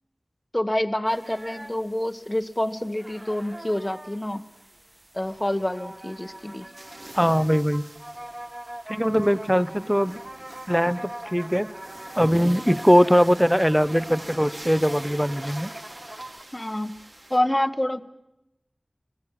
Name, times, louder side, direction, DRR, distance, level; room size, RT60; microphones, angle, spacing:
voice 1, 0.5-4.4 5.1-6.7 16.5-17.0 17.3-18.0, left 1 dB, 20° left, 11 dB, 1.1 m, -27 dB
sound 1, 1.1-16.4, right 1 dB, 30° right, 0.9 m, -42 dB
sound 2, 5.2-17.4, right 1 dB, 55° right, 3.0 m, -45 dB
voice 2, 7.1-7.8 8.9-10.2 10.7-11.7 12.2-15.7, equal, ahead, 16 dB, 0.7 m, -21 dB
26.5 x 18.5 x 7.4 m, 0.92 s
wide cardioid pair, 60°, 0 cm